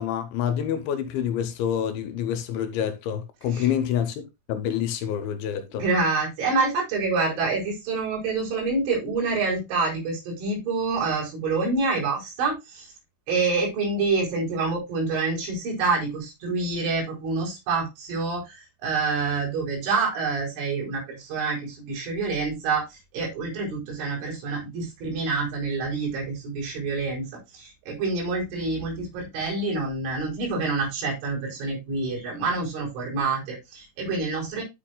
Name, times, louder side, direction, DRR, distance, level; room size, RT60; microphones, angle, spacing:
voice 1, 0.0-5.8, left 9 dB, 75° left, 3.0 m, -27 dB
voice 2, 5.7-12.9 13.3-27.3 27.5-34.6, right 3 dB, 75° right, 7.1 m, -27 dB
11.5 x 6.6 x 2.2 m
omnidirectional pair, 5.5 m